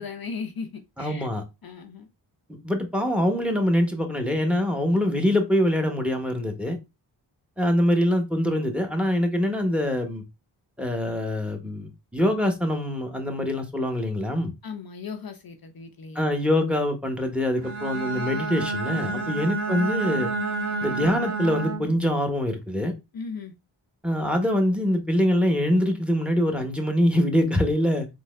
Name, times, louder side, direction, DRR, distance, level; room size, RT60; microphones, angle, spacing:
voice 1, 0.0-1.3 1.6-2.1 14.6-16.2 19.1-19.4 23.1-23.5, left 5 dB, 50° left, 0.6 m, -37 dB
voice 2, 1.0-1.4 2.6-6.8 7.6-10.2 10.8-14.5 16.1-20.3 20.8-22.9 24.0-28.1, left 1 dB, 5° right, 1.1 m, -24 dB
Bowed string instrument, 17.6-22.0, right 3 dB, 65° right, 1.4 m, -29 dB
4.0 x 3.0 x 2.5 m
cardioid pair, 40°, 45 cm